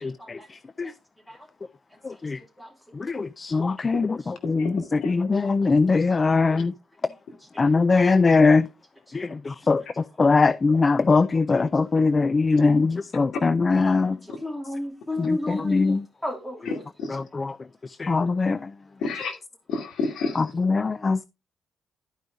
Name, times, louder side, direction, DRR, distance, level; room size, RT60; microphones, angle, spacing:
voice 1, 3.1-6.7 7.6-8.6 9.1-9.8 10.2-14.2 15.2-16.0 17.1-17.5 18.0-18.6 20.4-21.2, left 4 dB, 30° left, 0.3 m, -21 dB
voice 2, 14.0-15.9 16.2-16.8, left 2 dB, 5° left, 2.8 m, -32 dB
voice 3, 16.7-17.1 19.0-19.4 19.7-20.4, left 4 dB, 70° left, 2.2 m, -29 dB
12.0 x 5.3 x 3.4 m
cardioid pair, 90°, 0 cm